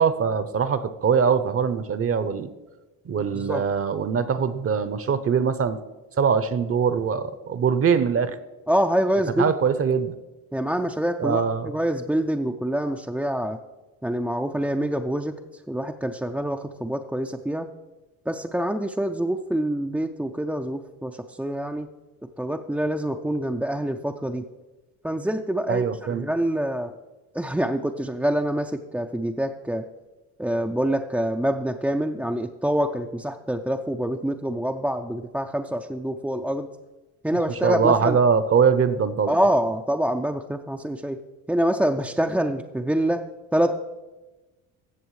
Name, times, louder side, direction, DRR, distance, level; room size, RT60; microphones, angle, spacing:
voice 1, 0.0-2.5 3.1-5.8 6.2-8.3 9.4-10.2 11.2-11.7 25.7-26.2 37.5-39.3, right 6 dB, 35° right, 13 dB, 0.7 m, -22 dB
voice 2, 3.2-3.6 8.7-9.5 10.5-13.6 14.0-15.3 15.7-17.7 18.3-21.9 22.4-24.5 25.0-26.9 27.3-29.8 30.4-36.7 37.2-38.2 39.3-41.2 41.5-43.2 43.5-43.8, right 1 dB, 5° right, 2 dB, 0.4 m, -26 dB
15.0 x 6.9 x 3.2 m, 1.1 s
supercardioid pair, 70°, 39 cm